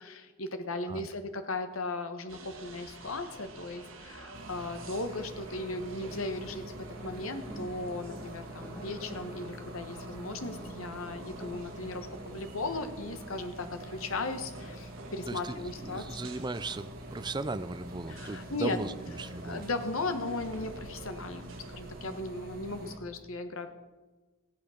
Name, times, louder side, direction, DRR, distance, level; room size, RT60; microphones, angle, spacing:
voice 1, 0.0-6.6 7.0-16.2 18.1-18.8 19.4-23.7, left 2 dB, 75° left, 8 dB, 1.3 m, -37 dB
sound 1, 2.3-22.2, right 2 dB, 65° right, 1.9 m, -50 dB
sound 2, 4.3-23.0, right 1 dB, 45° right, 1.8 m, -46 dB
sound 3, 5.9-12.2, equal, 5° left, 3.7 m, -48 dB
voice 2, 15.3-19.7, right 2 dB, 20° right, 13 dB, 0.5 m, -37 dB
15.0 x 9.4 x 6.4 m, 1.2 s
head